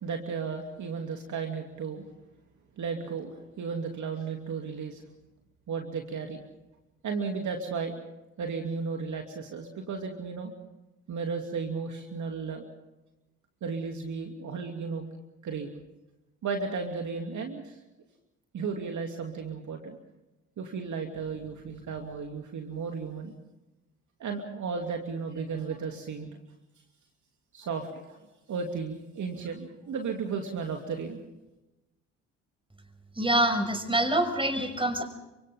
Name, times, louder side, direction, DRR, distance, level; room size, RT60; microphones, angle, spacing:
voice 1, 0.0-2.1 2.8-5.0 5.7-6.4 7.0-8.0 8.4-10.5 11.1-12.7 13.6-15.1 15.4-15.7 16.4-17.8 18.5-20.0 20.6-23.3 24.2-26.3 27.5-28.2 28.5-31.2, right 5 dB, 55° right, 3 dB, 2.8 m, -34 dB
voice 2, 33.2-35.0, right 1 dB, 15° right, 8 dB, 5.6 m, -26 dB
30.0 x 25.0 x 3.7 m, 0.98 s
hypercardioid pair, 50°, 36 cm